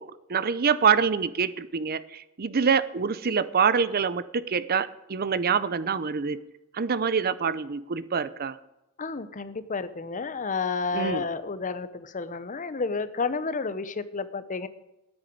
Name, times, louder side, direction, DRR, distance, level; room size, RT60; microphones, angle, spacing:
voice 1, 0.0-6.4 6.7-8.6 10.9-11.3, right 6 dB, 45° right, 16 dB, 0.6 m, -25 dB
voice 2, 9.0-14.7, left 4 dB, 35° left, 14 dB, 0.8 m, -31 dB
9.7 x 9.1 x 8.6 m, 0.94 s
head